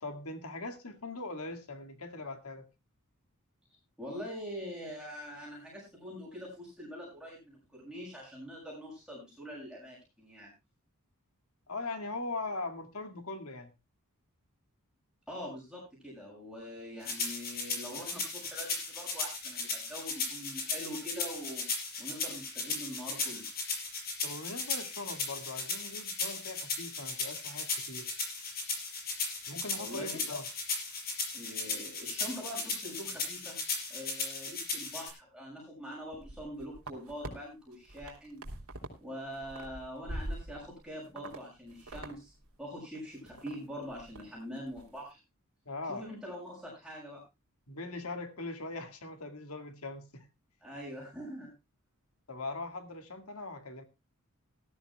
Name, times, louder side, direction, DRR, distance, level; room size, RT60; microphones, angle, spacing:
voice 1, 0.0-2.7 11.7-13.7 24.2-28.1 29.5-30.4 45.7-46.2 47.7-50.3 52.3-53.8, left 2 dB, 70° left, 7 dB, 2.1 m, -40 dB
voice 2, 4.0-10.5 15.3-21.7 22.0-23.5 29.8-30.3 31.3-33.6 33.9-38.4 39.0-42.3 42.6-45.2 45.9-47.2 50.6-51.5, equal, 5° right, -5 dB, 6.8 m, -44 dB
sound 1, 17.0-35.1, left 4 dB, 45° left, 5.8 m, -36 dB
sound 2, 36.1-37.3 37.7-39.0 39.3-40.8 41.2-41.4 41.7-42.1 42.4-42.5 42.9-43.5 43.9-44.2 44.6-44.9, right 1 dB, 70° right, 3.1 m, -42 dB
19.0 x 13.5 x 2.3 m, 0.27 s
head